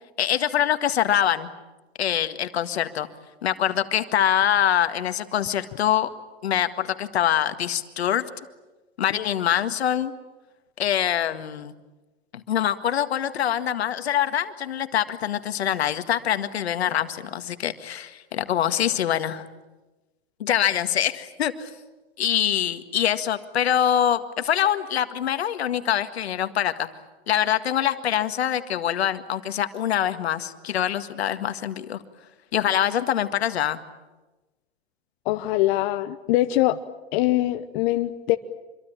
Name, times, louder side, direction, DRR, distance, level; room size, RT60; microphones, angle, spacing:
voice 1, 0.2-1.5 2.0-3.1 3.4-6.1 6.4-8.3 9.0-10.1 10.8-11.7 12.3-19.4 20.4-21.7 22.2-26.9 27.3-32.0 32.5-33.8, left 10 dB, 80° left, 10 dB, 1.9 m, -24 dB
voice 2, 35.2-36.8 37.1-38.4, left 16 dB, 50° left, 9 dB, 1.1 m, -23 dB
26.0 x 23.5 x 8.9 m, 1.1 s
hypercardioid pair, 115°, 32 cm